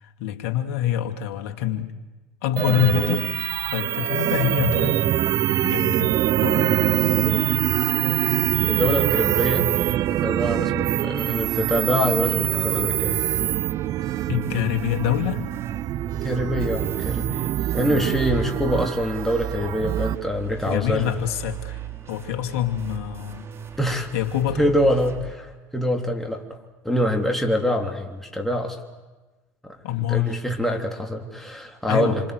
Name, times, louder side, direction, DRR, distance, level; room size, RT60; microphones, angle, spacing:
voice 1, 0.0-1.9 2.4-3.3 3.7-5.0 5.6-6.7 14.3-15.4 20.7-23.5 24.1-24.7 29.8-30.4 31.9-32.2, left 11 dB, 65° left, 5 dB, 2.4 m, -25 dB
sound 1, 2.6-20.2, right 12 dB, 50° right, 0.8 m, -24 dB
sound 2, 7.9-25.3, right 11 dB, 35° right, 3.5 m, -39 dB
voice 2, 8.7-9.7 10.1-13.2 16.2-17.5 17.7-21.1 23.8-24.1 24.6-26.4 26.8-28.8 29.6-29.8 30.1-32.2, equal, 5° left, 2 dB, 3.4 m, -25 dB
27.0 x 26.0 x 8.1 m, 1.2 s
hypercardioid pair, 75°, 8 cm